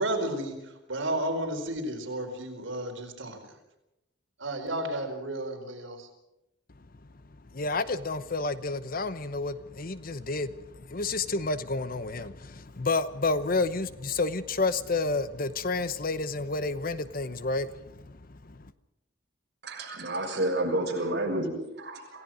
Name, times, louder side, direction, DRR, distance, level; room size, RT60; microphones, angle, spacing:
voice 1, 0.0-3.5 4.4-6.1, right 1 dB, 80° right, 3 dB, 4.5 m, -32 dB
voice 2, 7.5-18.7, left 3 dB, 45° left, 13 dB, 0.9 m, -30 dB
voice 3, 19.6-22.2, right 1 dB, 55° right, 0 dB, 6.6 m, -30 dB
27.5 x 16.5 x 6.3 m, 0.90 s
head